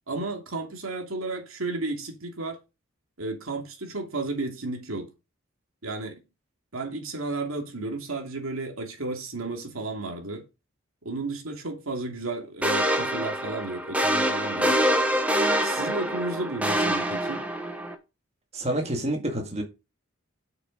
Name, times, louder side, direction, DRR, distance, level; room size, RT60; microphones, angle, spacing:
voice 1, 0.1-2.6 3.2-5.1 5.8-6.2 6.7-10.4 11.0-14.8 15.6-17.5, right 3 dB, 90° right, 2.6 m, -33 dB
sound 1, 12.6-17.9, equal, 5° right, 1.1 m, -25 dB
voice 2, 18.5-19.6, right 1 dB, 30° right, 1.9 m, -28 dB
8.0 x 6.7 x 5.1 m
head